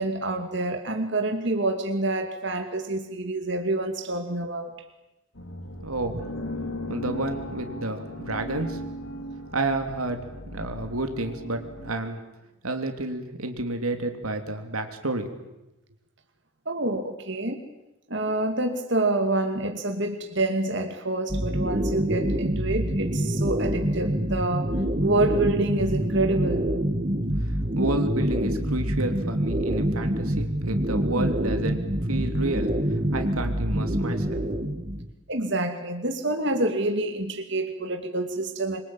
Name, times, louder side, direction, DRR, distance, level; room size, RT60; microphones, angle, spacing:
voice 1, 0.0-4.7 16.7-17.6 18.1-26.7 35.3-38.8, right 2 dB, 55° right, 5 dB, 2.5 m, -27 dB
sound 1, 5.4-11.9, left 1 dB, 70° left, 3.8 m, -37 dB
voice 2, 5.8-6.2 6.9-8.8 9.5-10.2 10.5-12.2 12.6-15.3 27.3-34.4, right 2 dB, 90° right, 6 dB, 3.3 m, -30 dB
sound 2, 21.3-35.1, equal, 30° right, 1.9 m, -26 dB
26.0 x 24.0 x 9.0 m, 0.95 s
head